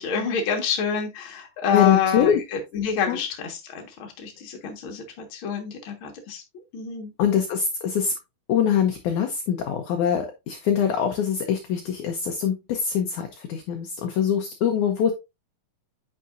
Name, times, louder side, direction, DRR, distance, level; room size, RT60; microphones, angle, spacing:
voice 1, 0.0-6.4 6.7-7.1, left 7 dB, 45° left, 1.9 m, -27 dB
voice 2, 1.7-2.4 3.1-3.2 7.2-8.1 8.5-15.1, left 8 dB, 75° left, 1.9 m, -23 dB
9.1 x 5.7 x 2.6 m
omnidirectional pair, 4.3 m